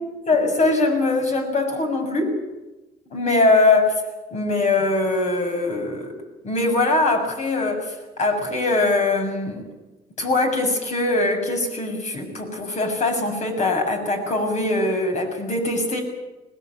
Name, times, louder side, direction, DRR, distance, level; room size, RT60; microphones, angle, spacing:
voice 1, 0.0-2.4 3.1-3.9 4.3-6.1 6.4-9.7 10.2-16.0, left 2 dB, 45° left, 4 dB, 6.6 m, -22 dB
20.5 x 19.5 x 9.0 m, 1.1 s
cardioid pair, 110°, 17 cm